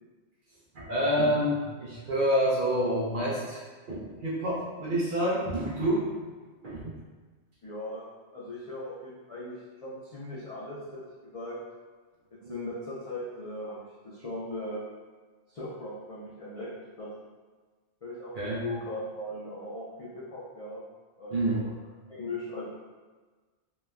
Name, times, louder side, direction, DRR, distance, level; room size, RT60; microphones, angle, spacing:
voice 1, 0.7-3.6 3.9-6.2 6.6-6.9 12.4-12.5 18.3-18.6 21.3-21.6, equal, 55° right, -7 dB, 0.6 m, -28 dB
voice 2, 7.6-8.0 8.3-11.6 12.3-14.8 15.5-17.1 18.0-20.8 21.2-21.7 22.1-22.7, left 1 dB, 65° left, -8 dB, 0.3 m, -39 dB
3.0 x 2.1 x 2.3 m, 1.4 s
omnidirectional pair, 1.2 m